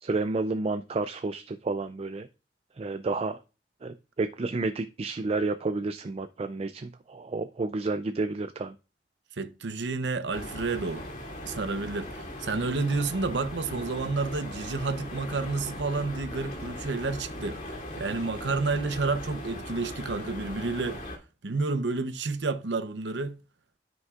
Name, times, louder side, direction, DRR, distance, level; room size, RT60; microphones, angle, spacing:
voice 1, 0.0-2.3 2.8-3.4 3.8-8.7, right 3 dB, 35° right, 0.4 m, -30 dB
voice 2, 9.4-11.0 11.4-17.6 18.0-21.0 21.4-23.4, right 3 dB, 85° right, 0.8 m, -30 dB
sound 1, 10.3-21.2, left 1 dB, 45° left, 2.6 m, -39 dB
13.0 x 5.3 x 2.4 m
head